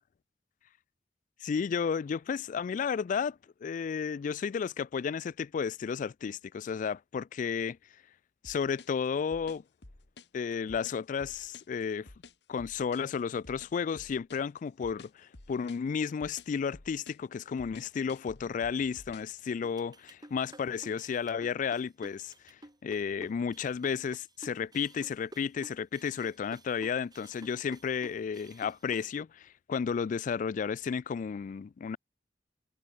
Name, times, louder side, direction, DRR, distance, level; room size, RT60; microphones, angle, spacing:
voice 1, 1.4-7.8 8.4-9.6 10.3-12.1 12.5-22.3 22.8-32.0, left 6 dB, 45° left, 0.3 m, -33 dB
sound 1, 8.4-19.4, left 2 dB, 70° left, 2.1 m, -52 dB
sound 2, 19.6-29.1, right 1 dB, 25° right, 4.0 m, -51 dB
head